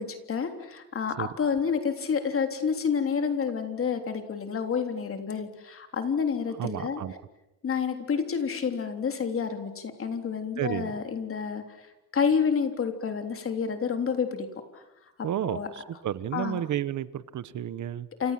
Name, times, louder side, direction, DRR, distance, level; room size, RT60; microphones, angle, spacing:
voice 1, 0.0-7.0 7.6-14.5 14.7-14.8 15.4-15.7 16.3-16.6 18.2-18.3, left 6 dB, 45° left, 6 dB, 3.5 m, -29 dB
voice 2, 6.6-7.2 10.6-10.9 15.2-18.1, right 10 dB, 70° right, 15 dB, 1.2 m, -32 dB
29.0 x 26.5 x 7.6 m, 0.95 s
wide cardioid pair, 165°, 31 cm